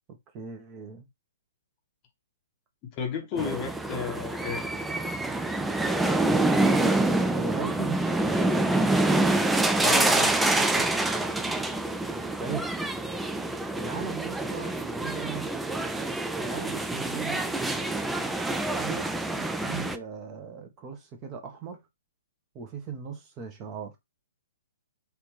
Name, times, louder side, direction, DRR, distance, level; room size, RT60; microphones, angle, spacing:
voice 1, 0.3-1.1 3.3-3.6 6.9-8.1 12.4-12.7 13.7-15.5 16.4-18.3 18.7-19.1 19.4-21.8 22.5-24.0, right 5 dB, 25° right, 0.8 m, -38 dB
voice 2, 2.8-4.6 9.8-10.9, left 5 dB, 30° left, 0.8 m, -33 dB
sound 1, 3.4-20.0, right 2 dB, 5° right, 0.3 m, -26 dB
3.3 x 2.5 x 3.1 m
figure-of-eight pair, 120°, 0 cm